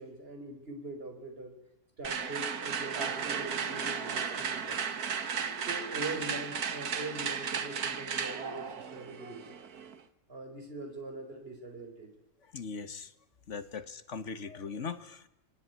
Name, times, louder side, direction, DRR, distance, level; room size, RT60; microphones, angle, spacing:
voice 1, 0.0-1.5 2.0-4.8 5.6-9.4 10.3-12.1, right 2 dB, 40° right, 4 dB, 4.6 m, -42 dB
sound 1, 2.0-10.0, right 6 dB, 85° right, 2.0 m, -35 dB
voice 2, 12.5-13.1 13.5-15.3, left 5 dB, 55° left, 13 dB, 1.6 m, -39 dB
26.5 x 21.0 x 9.5 m, 0.86 s
omnidirectional pair, 1.6 m